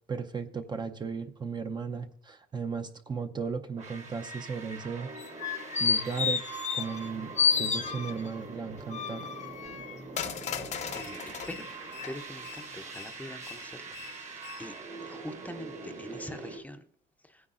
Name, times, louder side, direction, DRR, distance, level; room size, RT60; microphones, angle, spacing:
voice 1, 0.1-5.1 5.8-6.4 6.7-9.3, right 5 dB, 25° right, 6 dB, 0.7 m, -36 dB
sound 1, 3.8-16.6, right 4 dB, 40° right, 1.6 m, -43 dB
sound 2, 5.2-7.1 7.4-8.4 8.9-11.5 12.0-12.1, left 6 dB, 45° left, 0.8 m, -30 dB
sound 3, 10.4-15.0, left 12 dB, 85° left, 1.5 m, -50 dB
voice 2, 11.0-13.9 14.6-14.7 15.1-16.8, left 1 dB, 10° left, 8 dB, 0.7 m, -43 dB
17.0 x 9.6 x 2.5 m, 0.65 s
cardioid pair, 110°, 17 cm